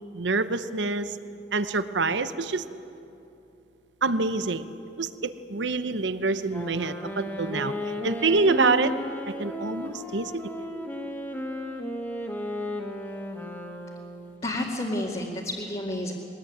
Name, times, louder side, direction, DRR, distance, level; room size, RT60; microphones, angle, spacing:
voice 1, 0.1-1.2 1.5-2.7 4.0-4.7 5.0-7.7 8.0-8.9 9.4-10.3, right 3 dB, 85° right, 12 dB, 0.9 m, -26 dB
Wind instrument woodwind instrument, 6.5-14.3, left 1 dB, 10° left, 2.0 m, -34 dB
voice 2, 14.4-16.1, left 1 dB, 35° left, -3 dB, 2.1 m, -30 dB
22.0 x 19.5 x 9.5 m, 2.8 s
head